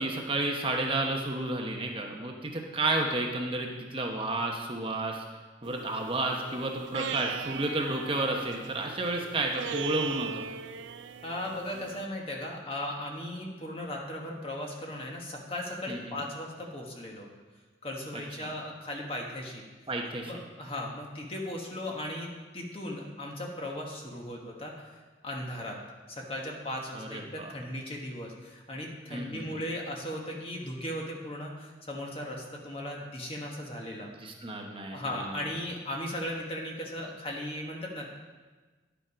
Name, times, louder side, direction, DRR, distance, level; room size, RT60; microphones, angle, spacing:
voice 1, 0.0-5.2 5.6-10.4 15.9-16.2 18.4-18.5 19.9-20.3 26.9-27.5 29.1-29.6 34.2-35.5, right 2 dB, 30° right, 1 dB, 0.9 m, -31 dB
sound 1, 5.6-12.1, right 7 dB, 75° right, 0.4 m, -39 dB
voice 2, 11.2-17.3 17.8-19.6 20.2-24.7 25.2-25.8 26.1-34.1 34.9-38.1, left 1 dB, 30° left, -1 dB, 1.3 m, -37 dB
10.5 x 6.9 x 5.0 m, 1.3 s
head